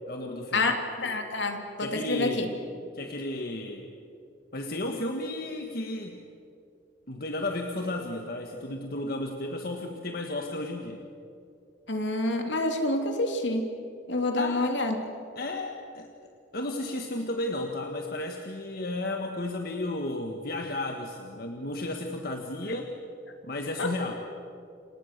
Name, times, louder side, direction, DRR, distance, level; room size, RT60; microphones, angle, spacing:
voice 1, 0.1-0.7 1.8-2.5 2.9-4.0 4.5-6.2 7.1-11.1 14.3-14.7 15.3-16.1 16.5-22.9 23.4-24.2, left 1 dB, 50° left, 3 dB, 1.7 m, -33 dB
voice 2, 1.0-2.5 11.9-13.7 14.1-15.0 23.8-23.9, left 2 dB, 70° left, 4 dB, 3.0 m, -27 dB
29.5 x 26.5 x 6.8 m, 2.5 s
head